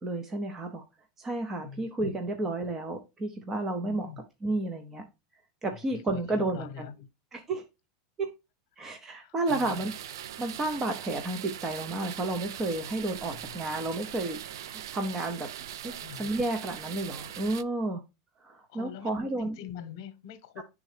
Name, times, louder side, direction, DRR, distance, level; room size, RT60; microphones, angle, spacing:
voice 1, 0.0-0.8 1.2-4.1 4.4-5.0 5.6-6.9 7.3-7.6 8.2-8.3 8.8-9.9 10.4-15.5 15.8-18.0 18.4-19.6 20.6-20.7, right 2 dB, 15° right, 0.6 m, -32 dB
voice 2, 1.6-2.2 3.8-4.2 5.9-7.1 8.8-8.9 9.2-9.8 13.3-13.5 15.9-16.3 18.7-20.6, left 8 dB, 55° left, 0.9 m, -44 dB
sound 1, 9.5-17.6, right 10 dB, 80° right, 0.3 m, -41 dB
9.0 x 3.6 x 3.2 m
supercardioid pair, 165°, 2 cm